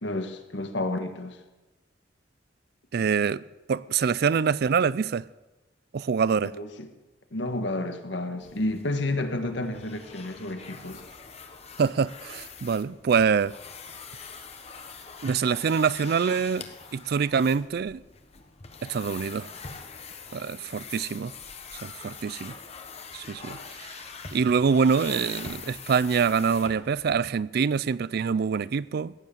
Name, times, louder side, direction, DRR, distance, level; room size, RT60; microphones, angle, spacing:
voice 1, 0.0-1.4 6.4-6.9 7.3-11.0, left 2 dB, 65° left, 1.5 m, -31 dB
voice 2, 2.9-3.4 3.7-5.3 5.9-6.5 11.8-13.5 15.2-16.7 16.9-18.0 18.8-19.5 20.3-21.3 21.8-22.5 23.1-24.0 24.3-29.1, right 6 dB, 55° right, 0.4 m, -25 dB
sound 1, 8.4-27.2, left 5 dB, 35° left, 1.2 m, -43 dB
15.5 x 9.3 x 7.2 m
head